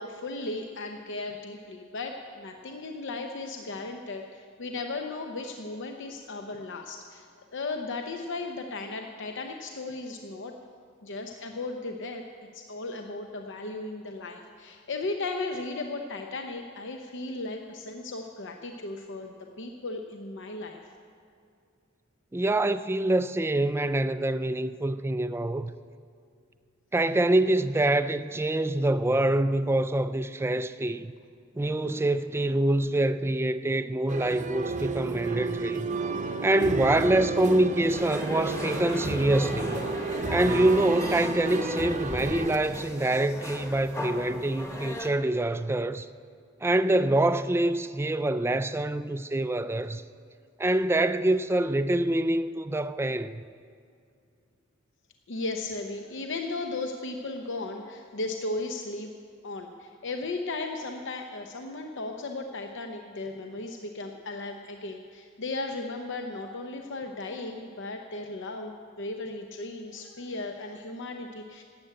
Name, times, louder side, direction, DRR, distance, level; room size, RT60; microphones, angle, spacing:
voice 1, 0.0-7.2 7.5-10.5 11.0-12.2 12.5-20.8 31.8-31.9 55.3-59.1 59.4-71.6, left 2 dB, 60° left, 0.8 m, -36 dB
voice 2, 22.3-25.7 26.9-31.1 31.6-35.9 36.4-39.8 40.3-46.1 46.6-50.0 50.6-53.4, right 1 dB, 10° right, 0.3 m, -25 dB
sound 1, 34.1-42.6, right 3 dB, 35° right, 0.7 m, -32 dB
sound 2, 37.9-45.1, left 1 dB, 15° left, 1.3 m, -37 dB
13.0 x 8.8 x 8.8 m
head